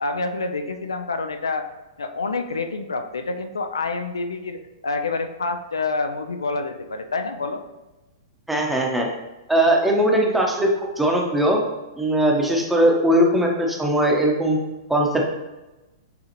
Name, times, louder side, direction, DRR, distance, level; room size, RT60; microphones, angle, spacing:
voice 1, 0.0-1.6 2.0-7.6, left 3 dB, 85° left, 6 dB, 0.4 m, -27 dB
voice 2, 8.5-9.1 9.5-11.6 12.0-14.6 14.9-15.2, right 1 dB, 5° right, 0 dB, 0.8 m, -19 dB
6.8 x 2.4 x 2.9 m, 1.0 s
hypercardioid pair, 110°, 2 cm